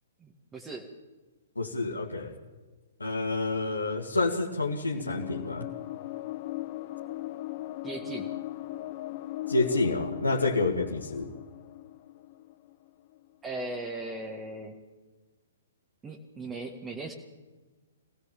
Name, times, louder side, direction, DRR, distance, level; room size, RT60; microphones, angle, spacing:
voice 1, 0.2-0.9 7.8-8.3 13.4-14.8 16.0-17.1, right 2 dB, 15° right, 1 dB, 1.9 m, -38 dB
voice 2, 1.6-2.3 3.0-5.7 9.5-11.3, left 3 dB, 80° left, 1 dB, 2.1 m, -28 dB
sound 1, 5.1-13.2, left 16 dB, 35° left, 0.9 m, -39 dB
25.0 x 17.0 x 7.4 m, 1.3 s
figure-of-eight pair, 120°, 0 cm